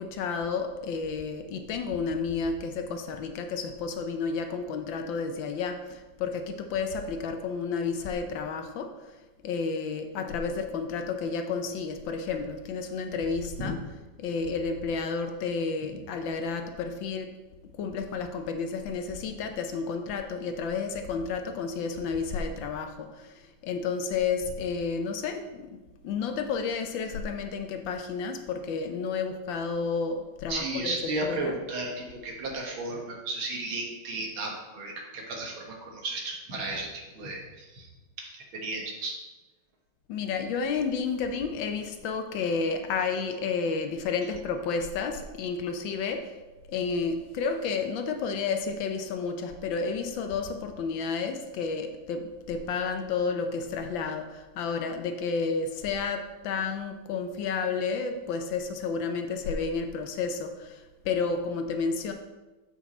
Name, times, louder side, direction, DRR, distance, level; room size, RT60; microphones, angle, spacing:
voice 1, 0.0-9.1 9.4-13.8 14.2-17.3 17.8-30.9 31.2-31.5 40.1-46.3 46.7-62.1, left 5 dB, 70° left, 6 dB, 1.4 m, -31 dB
voice 2, 30.5-37.9 38.2-39.2, right 2 dB, 75° right, 0 dB, 2.2 m, -34 dB
8.1 x 5.7 x 4.2 m, 1.2 s
omnidirectional pair, 2.2 m